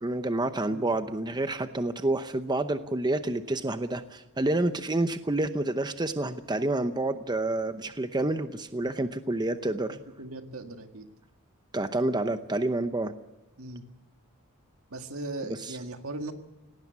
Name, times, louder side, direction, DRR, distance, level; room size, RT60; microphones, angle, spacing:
voice 1, 0.0-10.0 11.7-13.1 15.5-15.8, right 2 dB, 20° right, 9 dB, 0.8 m, -28 dB
voice 2, 10.2-11.1 13.6-13.8 14.9-16.3, right 2 dB, 75° right, 6 dB, 1.9 m, -38 dB
18.0 x 18.0 x 8.3 m, 1.0 s
head